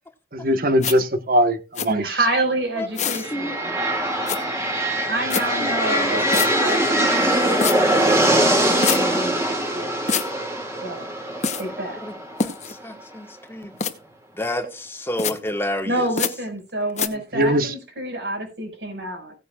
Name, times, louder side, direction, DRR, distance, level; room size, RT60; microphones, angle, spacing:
voice 1, 0.3-2.2 17.3-17.7, equal, 55° right, 1.3 m, -20 dB
sound 1, 0.8-1.0 1.8-1.9 3.0-3.3 4.3-4.4 5.3-5.4 6.3-6.5 7.6-7.8 8.8-9.0 10.1-10.3 11.4-11.6 12.4-12.7 13.8-13.9 15.2-15.3 16.2-16.3 17.0-17.1, left 6 dB, 40° left, 1.0 m, -24 dB
voice 2, 1.9-3.8 5.1-9.4 9.7-10.0 10.8-11.1 11.6-12.0 15.9-19.3, right 1 dB, 80° right, 5.7 m, -28 dB
voice 3, 2.8-3.6 5.6-7.3 12.0-12.1 12.4-13.7 14.3-16.1, left 1 dB, 15° left, 1.4 m, -30 dB
sound 2, 3.1-12.9, right 1 dB, 15° right, 2.4 m, -22 dB
17.0 x 9.3 x 2.4 m
head